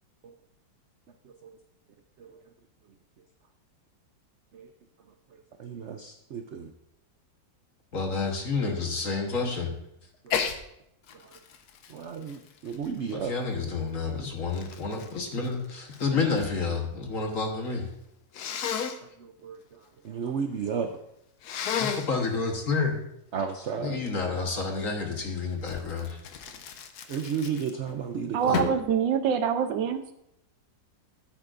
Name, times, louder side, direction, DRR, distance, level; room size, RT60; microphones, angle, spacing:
voice 1, 1.2-1.6 2.2-2.4 4.5-4.7 5.3-6.7 10.2-10.3 11.2-11.3 11.9-13.3 16.1-16.3 19.0-20.9 23.3-24.0 27.1-28.8, right 6 dB, 65° right, 5 dB, 0.7 m, -34 dB
voice 2, 7.9-9.7 13.1-17.9 21.8-23.0 23.8-26.2 28.4-28.6, left 4 dB, 50° left, 2 dB, 1.6 m, -29 dB
Sneeze, 10.3-10.6 11.1-13.4 14.1-16.6 16.9-17.5 18.3-19.0 21.4-22.2 25.7-28.0 28.5-28.9, left 7 dB, 65° left, 1.2 m, -33 dB
voice 3, 28.3-30.1, right 8 dB, 85° right, 9 dB, 1.5 m, -25 dB
14.0 x 8.4 x 2.6 m, 0.78 s
omnidirectional pair, 2.0 m